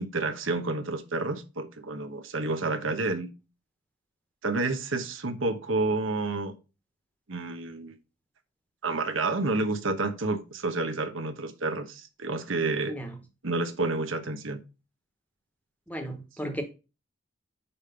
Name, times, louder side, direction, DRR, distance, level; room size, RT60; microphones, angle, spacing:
voice 1, 0.0-3.3 4.4-6.5 7.3-8.0 8.8-12.9 13.4-14.6, right 3 dB, 85° right, 1.1 m, -29 dB
voice 2, 15.9-16.6, right 1 dB, 10° left, 1.1 m, -34 dB
5.7 x 5.1 x 5.7 m
head